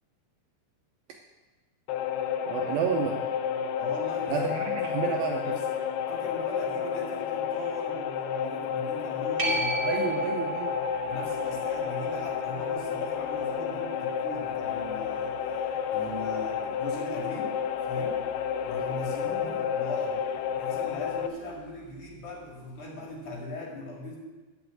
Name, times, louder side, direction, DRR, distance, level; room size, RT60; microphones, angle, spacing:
sound 1, 1.9-21.3, left 8 dB, 80° left, 2.6 m, -31 dB
voice 1, 2.5-3.2 4.3-5.5 9.8-10.8, right 8 dB, 80° right, 2 dB, 2.2 m, -30 dB
voice 2, 3.8-4.7 5.4-5.6 6.1-10.3 11.1-15.4 15.9-17.6 17.8-18.2 18.7-20.2 20.6-24.2, left 1 dB, 55° left, -1 dB, 2.9 m, -39 dB
sound 2, 9.4-16.5 22.1-22.2, right 2 dB, 30° right, 2.3 m, -36 dB
10.5 x 6.0 x 8.2 m, 1.2 s
omnidirectional pair, 4.9 m